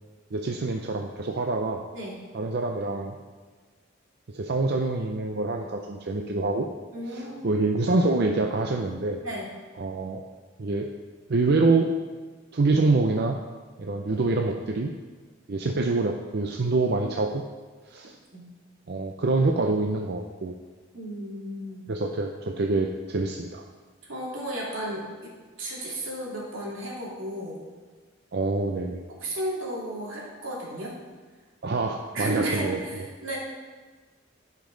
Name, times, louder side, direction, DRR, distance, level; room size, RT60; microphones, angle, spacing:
voice 1, 0.3-1.8 2.3-3.2 4.3-6.7 7.1-9.2 9.8-10.2 10.6-10.9 11.3-11.9 12.5-13.4 13.8-14.9 15.5-17.4 17.9-18.2 18.9-20.5 21.9-23.6 28.3-29.0 31.6-32.8, right 3 dB, 55° right, 3 dB, 0.5 m, -26 dB
voice 2, 6.9-7.5 9.2-9.5 18.3-18.5 20.9-21.9 24.0-25.3 25.6-27.6 29.1-31.0 32.1-33.4, right 1 dB, 80° right, -4 dB, 2.6 m, -34 dB
15.5 x 5.3 x 3.9 m, 1.4 s
head